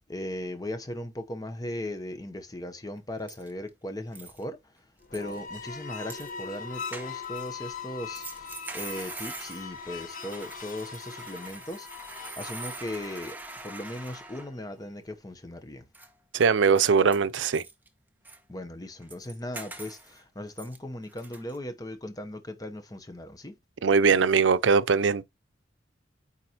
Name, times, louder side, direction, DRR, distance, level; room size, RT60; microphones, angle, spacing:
voice 1, 0.1-4.9 5.1-13.4 13.6-15.9 18.5-23.6, left 1 dB, 20° left, 0.9 m, -38 dB
sound 1, 3.0-3.1 3.3-3.7 4.2-4.4 5.1-5.4 6.1-6.3 6.9-7.5 8.1-14.8 15.9-16.1 16.4-16.5 16.8-17.9 18.2-18.4 19.0-20.2 20.6-20.8 21.1-21.6, right 3 dB, 10° right, 0.8 m, -43 dB
sound 2, 5.0-14.4, left 6 dB, 45° left, 1.1 m, -41 dB
voice 2, 16.3-17.6 23.8-25.2, right 5 dB, 80° right, 0.5 m, -21 dB
9.1 x 4.1 x 2.9 m
head